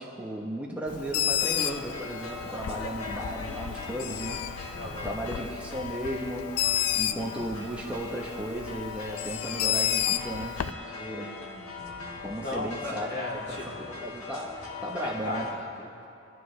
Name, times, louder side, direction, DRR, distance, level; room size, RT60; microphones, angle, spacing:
voice 1, 0.0-4.7 5.0-11.4 12.2-13.1 13.5-15.5, right 1 dB, 5° right, -2 dB, 0.9 m, -35 dB
Bird, 0.9-10.7, left 10 dB, 90° left, 0.4 m, -32 dB
sound 1, 1.4-15.5, left 4 dB, 65° left, 1.6 m, -40 dB
voice 2, 4.6-5.2 11.2-11.4 11.8-13.9 15.0-16.0, left 1 dB, 50° left, -5 dB, 3.1 m, -38 dB
sound 2, 7.3-7.7 8.2-9.7 10.3-10.5 10.8-13.0, equal, 10° left, 2.6 m, -46 dB
24.5 x 12.0 x 3.2 m, 2.7 s
head